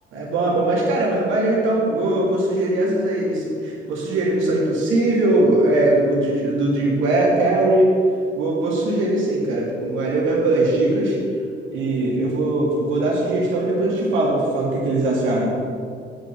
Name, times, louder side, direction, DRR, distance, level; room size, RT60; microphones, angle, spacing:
voice 1, 0.1-7.9 8.4-11.2 11.7-15.5, right 2 dB, 90° right, -4 dB, 2.5 m, -20 dB
8.4 x 5.9 x 7.0 m, 2.3 s
cardioid pair, 90°, 20 cm